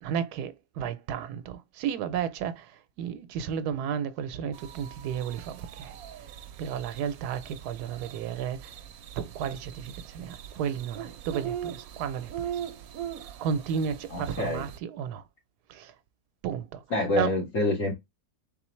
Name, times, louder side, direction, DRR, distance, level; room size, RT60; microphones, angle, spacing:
voice 1, 0.0-6.0 6.6-8.7 9.2-12.5 13.4-15.2 15.7-15.9 16.4-16.8 17.1-17.3, right 8 dB, 85° right, 1.2 m, -33 dB
sound 1, 4.5-14.8, right 10 dB, 70° right, 1.0 m, -41 dB
voice 2, 14.1-14.6 16.9-17.9, left 2 dB, 55° left, 2.3 m, -27 dB
4.3 x 3.7 x 3.1 m
omnidirectional pair, 1.6 m